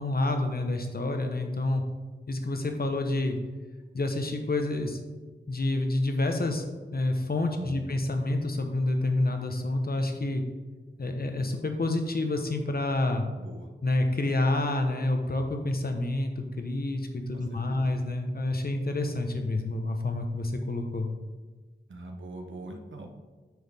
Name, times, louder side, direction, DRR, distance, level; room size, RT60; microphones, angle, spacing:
voice 1, 0.0-1.8 2.3-3.4 3.9-5.0 5.5-6.6 6.9-10.4 11.0-13.2 13.8-21.1, left 2 dB, 50° left, 4 dB, 1.0 m, -28 dB
voice 2, 7.5-7.9 13.3-13.7 17.3-17.9 21.9-23.1, right 2 dB, 75° right, 3 dB, 1.1 m, -42 dB
9.2 x 6.3 x 3.5 m, 1.3 s
wide cardioid pair, 85°, 20 cm